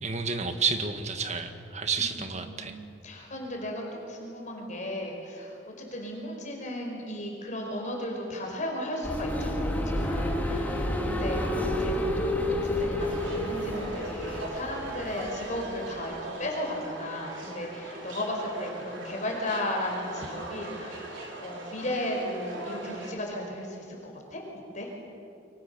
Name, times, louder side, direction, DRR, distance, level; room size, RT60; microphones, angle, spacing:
voice 1, 0.0-2.7, right 5 dB, 40° right, 7 dB, 1.8 m, -30 dB
voice 2, 1.9-11.4 11.8-24.4 24.7-24.9, left 1 dB, 40° left, 1 dB, 4.9 m, -35 dB
sound 1, 9.0-15.6, left 1 dB, 10° left, 2.7 m, -30 dB
sound 2, 13.0-23.1, right 2 dB, 90° right, 4.7 m, -40 dB
27.5 x 24.5 x 6.9 m, 2.6 s
head